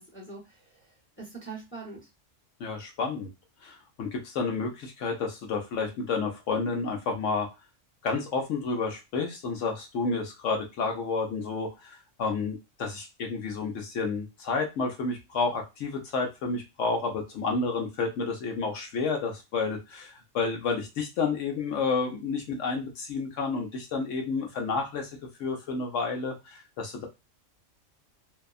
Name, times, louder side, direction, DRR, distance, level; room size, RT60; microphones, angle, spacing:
voice 1, 0.0-2.1, right 4 dB, 10° left, -2 dB, 0.7 m, -43 dB
voice 2, 2.6-3.3 3.6-7.5 8.0-25.1 25.4-27.1, left 4 dB, 75° left, 2 dB, 1.0 m, -30 dB
2.7 x 2.2 x 2.3 m, 0.25 s
omnidirectional pair, 1.3 m